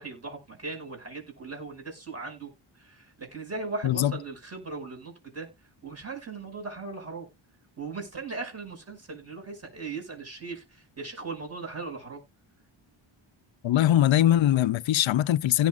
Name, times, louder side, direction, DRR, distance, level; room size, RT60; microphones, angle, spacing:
voice 1, 0.0-2.5 2.8-5.5 5.8-7.3 7.8-12.2, right 4 dB, 30° right, 6.0 m, -38 dB
voice 2, 13.6-15.7, left 12 dB, 65° left, 0.6 m, -22 dB
17.0 x 6.4 x 2.4 m
wide cardioid pair, 100°, 50 cm